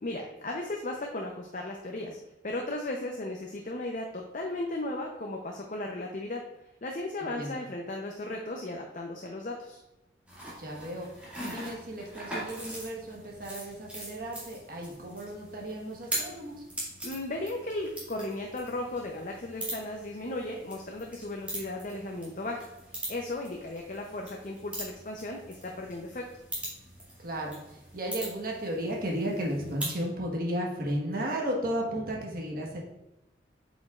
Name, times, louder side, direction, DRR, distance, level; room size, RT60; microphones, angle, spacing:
voice 1, 0.0-2.2 2.4-6.4 6.8-9.8 17.0-22.7 23.1-26.3, left 2 dB, 45° left, 1 dB, 0.6 m, -36 dB
voice 2, 7.2-7.6 10.6-11.1 11.4-16.6 27.2-32.8, right 1 dB, 50° right, -1 dB, 1.3 m, -34 dB
sound 1, 10.3-30.0, right 1 dB, 5° right, 2.0 m, -42 dB
7.9 x 5.2 x 2.4 m, 0.94 s
head